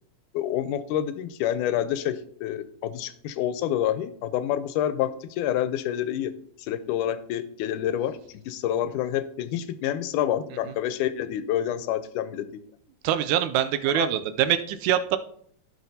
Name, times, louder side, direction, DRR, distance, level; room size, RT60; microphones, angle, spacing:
voice 1, 0.3-6.3 6.6-8.2 8.5-12.6 13.9-14.1, left 11 dB, 90° left, 13 dB, 2.1 m, -28 dB
voice 2, 13.0-15.2, right 10 dB, 80° right, 11 dB, 2.0 m, -24 dB
15.5 x 6.1 x 2.8 m, 0.64 s
omnidirectional pair, 3.5 m